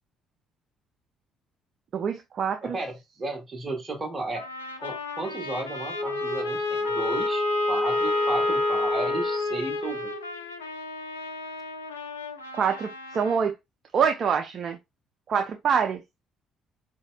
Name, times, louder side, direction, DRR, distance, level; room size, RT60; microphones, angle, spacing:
voice 1, 1.9-2.8 12.5-13.5 13.9-14.8 15.3-16.0, right 7 dB, 50° right, 0.4 m, -25 dB
voice 2, 2.6-4.5 4.8-10.1, right 2 dB, 35° right, 1.2 m, -34 dB
Trumpet, 4.3-13.4, left 3 dB, 90° left, 0.3 m, -36 dB
Wind instrument woodwind instrument, 5.9-10.4, left 2 dB, 25° left, 0.5 m, -27 dB
4.1 x 2.7 x 2.3 m
hypercardioid pair, 50°, 0 cm